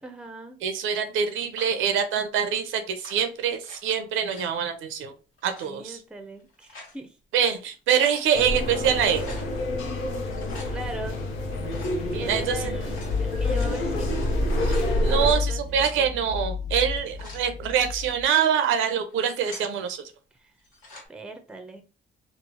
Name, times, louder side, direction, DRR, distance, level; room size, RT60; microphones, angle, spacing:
voice 1, 0.0-0.6 5.6-7.2 10.7-11.2 12.2-14.4 15.1-16.1 20.3-20.5 21.1-21.8, right 2 dB, 5° right, 6 dB, 0.5 m, -39 dB
voice 2, 0.6-5.2 5.4-6.0 7.3-9.2 12.1-12.6 14.6-14.7 15.0-20.0, right 8 dB, 90° right, 8 dB, 0.6 m, -25 dB
sound 1, 1.5-1.9 2.9-3.8 4.1-4.6 5.4-5.7 6.4-7.0 7.4-7.5 7.7-8.3 9.1-9.5 10.2-10.7 11.7-12.0 12.7-15.5 15.8-15.9 16.8-17.4 18.1-18.5 19.1-19.7 20.6-21.1, left 2 dB, 75° left, 1.2 m, -45 dB
sound 2, 8.3-15.3, left 1 dB, 90° left, 0.7 m, -28 dB
sound 3, 13.1-18.3, left 5 dB, 20° left, 1.0 m, -30 dB
3.0 x 2.0 x 2.8 m, 0.33 s
cardioid pair, 90°, 20 cm